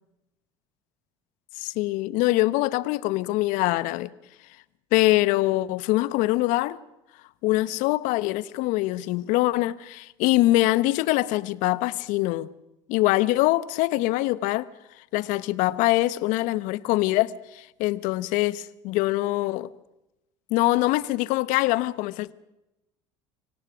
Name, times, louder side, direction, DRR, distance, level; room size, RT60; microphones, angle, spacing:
voice 1, 1.6-4.1 4.9-6.8 7.4-12.5 12.9-14.7 15.1-19.7 20.5-22.3, left 18 dB, 70° left, 1.0 m, -23 dB
25.5 x 17.5 x 6.1 m
hypercardioid pair, 75°, 14 cm